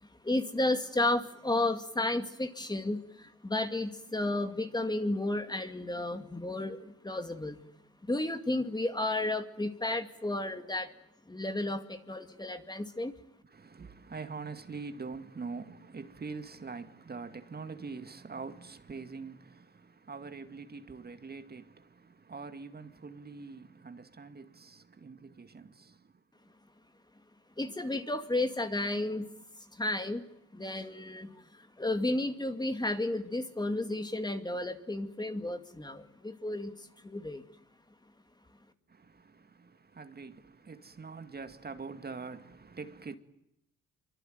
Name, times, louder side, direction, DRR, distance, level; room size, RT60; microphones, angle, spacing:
voice 1, 0.0-7.6 8.0-10.9 11.3-13.2 27.6-29.3 29.7-30.2 30.5-37.5, left 2 dB, 15° left, 2.4 m, -33 dB
voice 2, 13.5-26.1 38.9-43.2, right 4 dB, 30° right, 2.2 m, -44 dB
26.0 x 24.5 x 9.3 m
cardioid pair, 90°, 30 cm